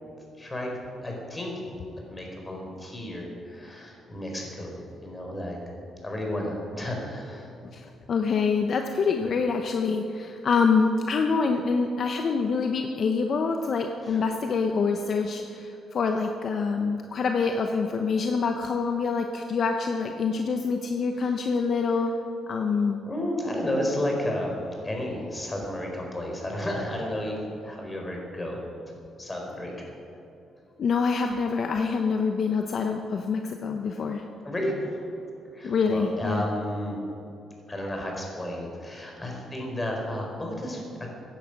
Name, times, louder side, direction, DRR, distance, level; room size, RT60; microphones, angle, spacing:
voice 1, 0.4-0.7 1.0-1.8 2.1-5.6 6.0-7.5 14.1-14.2 23.0-27.4 27.6-28.6 29.2-29.9 34.4-34.9 35.5-37.0 37.7-41.1, left 1 dB, 20° left, 0 dB, 4.0 m, -32 dB
voice 2, 7.7-22.1 22.5-23.0 30.8-34.2 35.6-36.4, left 5 dB, 55° left, 4 dB, 0.9 m, -26 dB
15.5 x 10.5 x 6.0 m, 2.7 s
cardioid pair, 90°, 0 cm